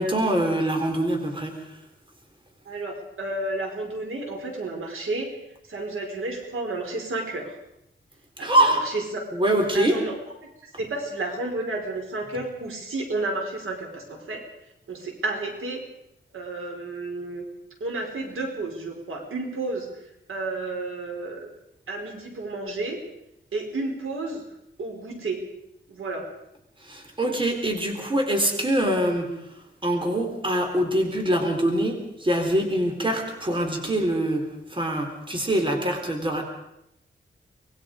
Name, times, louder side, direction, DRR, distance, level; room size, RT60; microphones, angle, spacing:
voice 1, 0.0-1.5 8.4-8.8 9.3-10.0 26.9-29.3 29.8-34.4 34.7-36.4, right 1 dB, 25° right, 3 dB, 4.0 m, -24 dB
voice 2, 2.6-5.3 5.7-7.5 8.4-9.2 9.7-10.3 10.6-14.4 14.9-15.8 16.3-17.4 17.8-19.9 20.3-21.5 21.9-23.0 23.5-24.4 24.8-25.4 25.9-26.3, right 2 dB, 85° right, 2 dB, 5.0 m, -31 dB
25.5 x 21.0 x 5.1 m, 0.83 s
wide cardioid pair, 115°, 21 cm